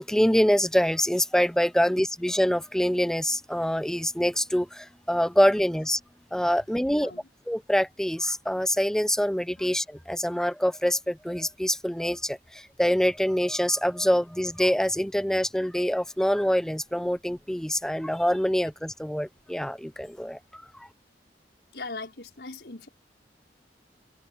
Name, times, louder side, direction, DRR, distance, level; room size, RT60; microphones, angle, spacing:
voice 1, 0.0-6.0 6.3-7.1 7.5-20.6, equal, 5° left, 0.7 m, -25 dB
voice 2, 6.8-7.3 21.7-22.9, left 3 dB, 75° left, 4.9 m, -39 dB
open air
head